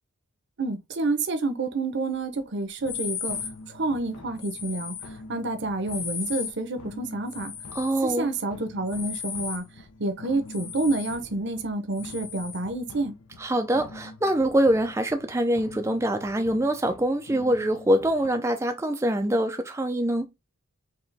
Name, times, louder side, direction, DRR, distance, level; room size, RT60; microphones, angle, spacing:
voice 1, 0.6-3.4 3.7-7.5 8.0-9.6 10.0-13.1, right 2 dB, 50° right, 0.8 m, -29 dB
sound 1, 2.8-18.3, left 2 dB, 75° left, 0.8 m, -47 dB
sound 2, 2.9-3.5 4.4-5.1 5.9-6.6 7.3-8.0 8.9-9.6 10.5-11.2 11.9-12.6, left 7 dB, 55° left, 1.3 m, -36 dB
voice 2, 7.8-8.3 13.4-20.3, right 1 dB, 15° right, 0.4 m, -24 dB
4.8 x 3.0 x 3.3 m
head